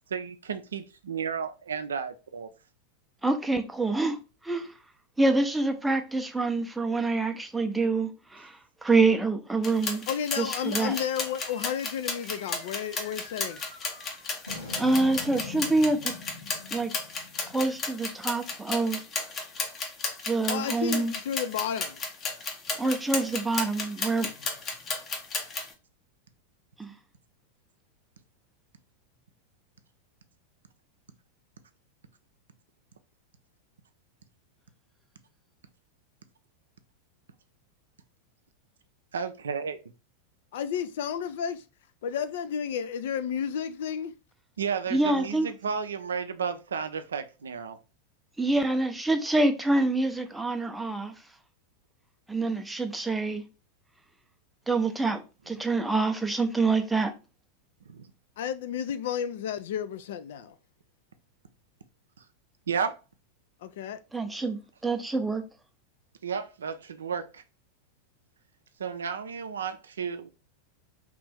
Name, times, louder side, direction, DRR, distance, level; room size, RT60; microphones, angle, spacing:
voice 1, 0.1-2.5 39.1-39.8 44.6-47.8 57.9-58.1 62.7-63.0 66.2-67.4 68.8-70.3, right 6 dB, 70° right, 0.4 m, -33 dB
voice 2, 3.2-4.7 5.2-8.6 8.8-10.0 10.4-10.9 14.8-16.1 16.7-16.9 17.5-19.0 20.3-21.1 22.8-24.3 26.8-26.9 44.9-45.5 48.4-51.1 52.3-53.4 54.7-57.1 64.1-65.4, right 3 dB, 5° right, 0.5 m, -26 dB
sound 1, 9.6-25.7, left 4 dB, 25° left, 0.7 m, -34 dB
voice 3, 10.1-13.7 20.5-22.0 40.5-41.6 42.0-44.1 58.4-60.6 63.6-64.0, left 8 dB, 55° left, 0.3 m, -32 dB
sound 2, 10.4-19.0, left 3 dB, 90° left, 1.3 m, -45 dB
3.0 x 2.5 x 3.4 m
figure-of-eight pair, 90°, 0 cm